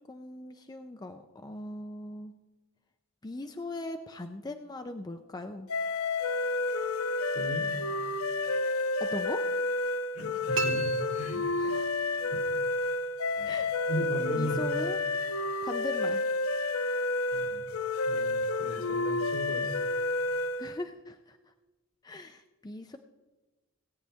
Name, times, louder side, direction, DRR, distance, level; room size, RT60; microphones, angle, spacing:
voice 1, 0.1-2.3 3.2-5.7 9.0-9.5 11.6-11.9 13.4-13.8 14.3-15.0 15.6-16.2 20.6-21.4 22.0-23.0, left 2 dB, 20° left, 7 dB, 0.4 m, -39 dB
sound 1, 5.7-20.8, left 2 dB, 90° left, 0.6 m, -30 dB
voice 2, 7.3-7.7 10.1-11.7 12.3-12.4 13.3-13.5 13.9-14.7 17.3-17.6 18.0-19.7, right 1 dB, 70° left, -2 dB, 2.8 m, -36 dB
sound 2, 10.5-12.1, right 3 dB, 65° right, 1.3 m, -36 dB
17.5 x 9.1 x 3.5 m, 1.1 s
head